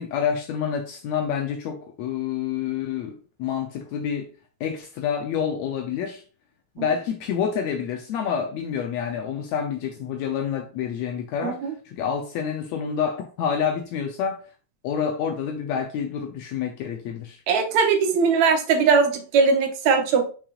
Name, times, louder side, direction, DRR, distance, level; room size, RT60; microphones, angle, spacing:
voice 1, 0.0-4.3 4.6-6.2 6.8-11.6 11.9-14.4 14.8-17.4, left 7 dB, 75° left, 1.9 m, -28 dB
voice 2, 11.4-11.7 17.5-20.3, right 5 dB, 75° right, 2.3 m, -20 dB
6.6 x 6.0 x 2.4 m
omnidirectional pair, 3.3 m